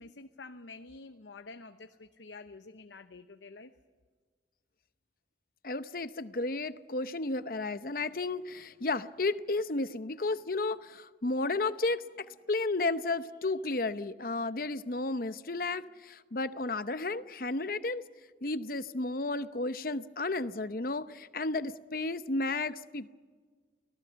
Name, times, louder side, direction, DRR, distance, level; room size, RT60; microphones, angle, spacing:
voice 1, 0.0-3.7, left 3 dB, 90° left, 8 dB, 0.9 m, -48 dB
voice 2, 5.6-18.0 18.4-23.1, left 3 dB, 50° left, 12 dB, 0.8 m, -33 dB
29.0 x 18.5 x 7.0 m, 1.5 s
head